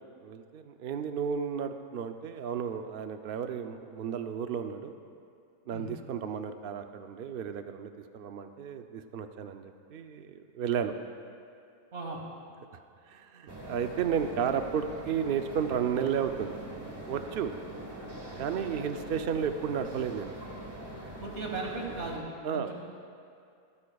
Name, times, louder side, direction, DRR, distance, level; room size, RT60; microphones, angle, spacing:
voice 1, 0.2-4.9 5.7-10.9 13.1-16.6 17.1-17.5 18.3-20.3 22.4-22.7, right 7 dB, 75° right, 7 dB, 0.5 m, -33 dB
voice 2, 11.9-12.2 18.5-18.7 21.2-22.7, right 3 dB, 50° right, 0 dB, 1.9 m, -37 dB
sound 1, 13.5-22.2, right 1 dB, 15° right, 1.2 m, -43 dB
24.5 x 9.7 x 2.3 m, 2.4 s
omnidirectional pair, 1.6 m